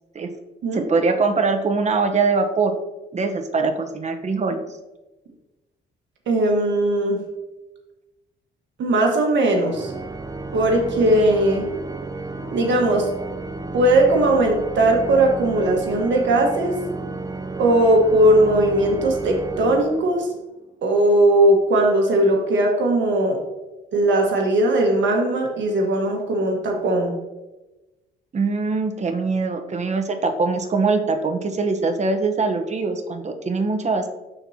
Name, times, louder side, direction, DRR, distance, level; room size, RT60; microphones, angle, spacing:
voice 1, 0.7-2.7 3.1-4.6 28.3-34.1, right 4 dB, 35° right, 6 dB, 0.9 m, -22 dB
voice 2, 6.3-7.2 8.8-9.9 10.5-11.7 12.5-13.1 13.7-16.8 17.6-20.3 20.8-23.4 23.9-27.1, right 1 dB, 65° right, 1 dB, 1.4 m, -18 dB
Organ, 9.7-20.4, right 3 dB, 20° right, 0.6 m, -32 dB
12.5 x 4.4 x 2.8 m, 1.1 s
cardioid pair, 90°, 20 cm